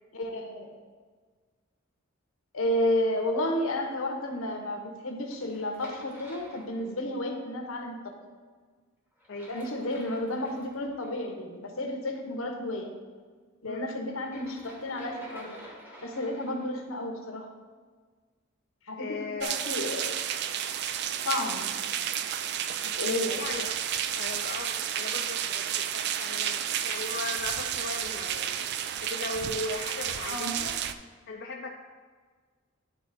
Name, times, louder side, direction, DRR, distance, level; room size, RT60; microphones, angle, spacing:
voice 1, 0.1-0.7 2.5-8.2 9.5-12.9 13.6-15.6 16.0-17.5 18.9-19.0 19.4-20.1 21.2-21.6 22.8-23.4 30.3-30.6, left 1 dB, 80° left, 3 dB, 1.0 m, -32 dB
sound 1, 5.3-7.3 9.2-11.1 14.1-16.8, equal, 10° right, 1.1 m, -50 dB
voice 2, 19.0-19.6 23.4-23.8 24.1-28.7 29.0-30.8 31.3-31.7, left 3 dB, 55° left, 1 dB, 0.5 m, -37 dB
sound 2, 19.4-30.9, right 10 dB, 55° right, 0.3 m, -31 dB
10.0 x 4.0 x 4.1 m, 1.5 s
head